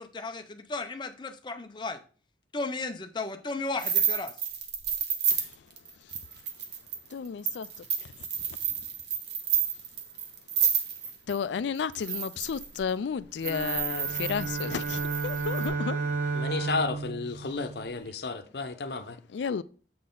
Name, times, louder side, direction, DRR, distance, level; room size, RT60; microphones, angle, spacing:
voice 1, 0.0-2.0 2.5-4.3, left 3 dB, 25° left, 0.5 m, -35 dB
sound 1, 3.8-11.4 11.9-12.8 13.4-15.7, right 7 dB, 75° right, 1.0 m, -30 dB
voice 2, 7.1-8.6 11.3-16.4 19.3-19.6, left 6 dB, 85° left, 0.4 m, -33 dB
sound 2, 13.4-18.1, right 4 dB, 45° right, 0.9 m, -33 dB
voice 3, 16.3-19.2, left 3 dB, 65° left, 0.7 m, -32 dB
7.6 x 4.1 x 3.8 m
head